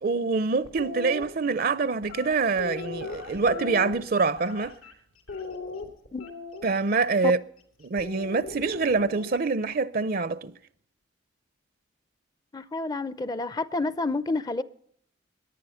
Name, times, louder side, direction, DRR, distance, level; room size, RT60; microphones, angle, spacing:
voice 1, 0.0-4.8 6.6-7.4 7.8-10.5, right 4 dB, 50° right, 0.5 m, -25 dB
sound 1, 0.6-1.2 2.0-4.9 5.3-6.8 8.0-9.3, left 4 dB, 85° left, 3.0 m, -38 dB
voice 2, 12.5-14.6, left 3 dB, 20° left, 0.5 m, -29 dB
18.5 x 10.5 x 5.7 m
head